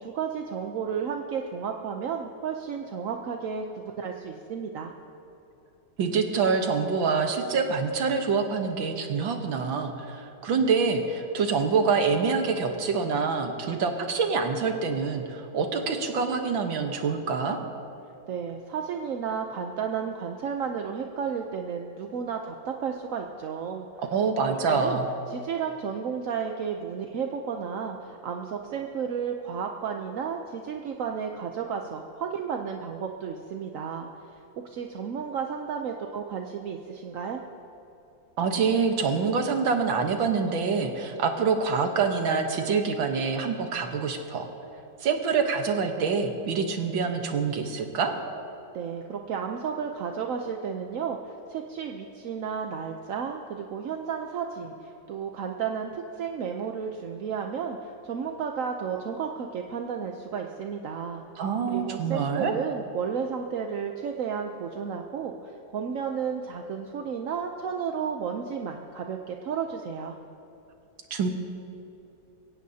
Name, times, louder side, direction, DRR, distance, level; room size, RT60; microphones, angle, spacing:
voice 1, 0.0-4.9 18.3-23.9 24.4-25.0 25.3-34.1 34.6-37.4 48.7-61.2 61.7-70.2, right 6 dB, 60° right, 3 dB, 0.9 m, -32 dB
voice 2, 6.0-17.6 24.1-25.1 38.4-44.5 45.0-48.1 61.4-62.5 71.1-71.3, right 5 dB, 85° right, 5 dB, 1.9 m, -26 dB
22.5 x 17.0 x 2.8 m, 2.9 s
omnidirectional pair, 2.1 m